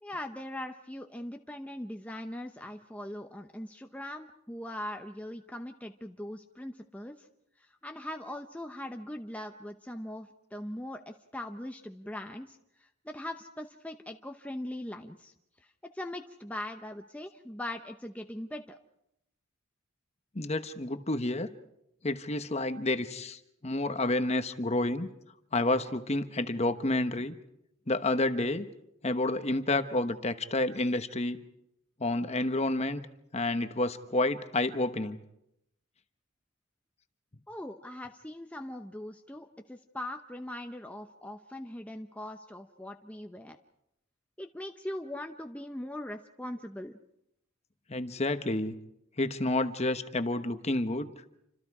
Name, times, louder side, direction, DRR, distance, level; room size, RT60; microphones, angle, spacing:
voice 1, 0.0-7.3 7.6-15.3 15.6-18.8 37.5-43.6 44.4-46.9, left 1 dB, 5° left, 4 dB, 0.8 m, -41 dB
voice 2, 20.3-21.5 22.0-25.1 25.5-27.3 27.9-28.7 29.0-31.4 32.0-33.0 33.3-35.2 47.9-48.7 49.2-51.1, left 2 dB, 30° left, 9 dB, 1.1 m, -29 dB
28.5 x 26.0 x 4.9 m, 0.82 s
head